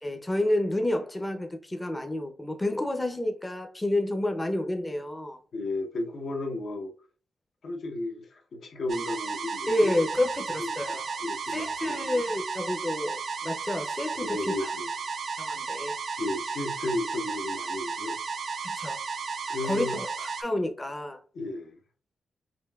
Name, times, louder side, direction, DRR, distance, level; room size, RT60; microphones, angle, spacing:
voice 1, 0.0-5.4 9.7-11.2 11.5-14.7 15.4-15.9 18.6-19.0 19.6-21.2, left 1 dB, 10° left, 0.5 m, -29 dB
voice 2, 5.5-6.9 7.6-9.9 10.6-12.0 14.2-14.9 16.2-18.2 19.5-20.0 21.3-21.8, left 2 dB, 65° left, 0.7 m, -34 dB
sound 1, 8.9-20.4, right 5 dB, 60° right, 0.5 m, -34 dB
5.0 x 2.6 x 2.3 m
wide cardioid pair, 115°, 0 cm